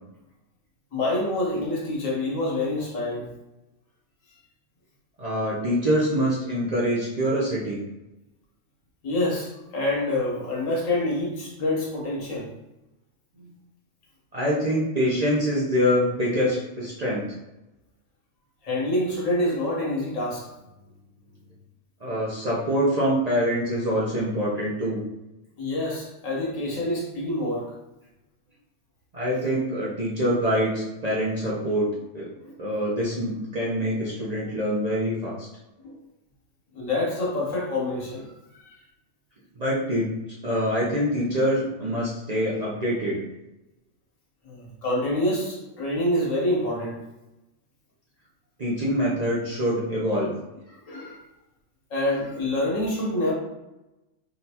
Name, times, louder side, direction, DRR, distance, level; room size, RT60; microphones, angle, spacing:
voice 1, 0.9-3.3 9.0-12.5 18.6-20.5 25.6-27.7 32.4-32.5 35.8-36.0 36.7-38.7 44.4-47.0 50.7-51.2 51.9-53.3, left 1 dB, 85° left, -3 dB, 1.4 m, -27 dB
voice 2, 5.2-7.8 13.4-13.5 14.3-17.3 22.0-25.0 29.1-31.9 32.1-32.3 32.6-35.5 39.6-40.1 40.4-43.2 48.6-50.3, equal, 45° right, -6 dB, 0.6 m, -25 dB
3.7 x 2.2 x 2.7 m, 0.96 s
omnidirectional pair, 1.3 m